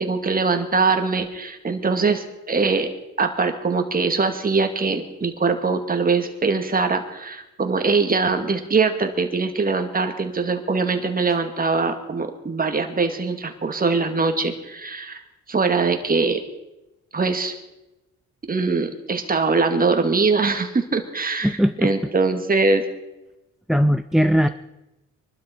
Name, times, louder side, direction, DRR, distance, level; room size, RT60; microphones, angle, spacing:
voice 1, 0.0-2.9 3.2-15.2 15.5-16.4 17.1-17.5 18.5-22.8, right 4 dB, 30° right, 6 dB, 2.2 m, -22 dB
voice 2, 21.4-21.9 23.7-24.5, equal, ahead, 12 dB, 0.5 m, -19 dB
23.5 x 12.5 x 4.5 m, 0.96 s
cardioid pair, 90°, 30 cm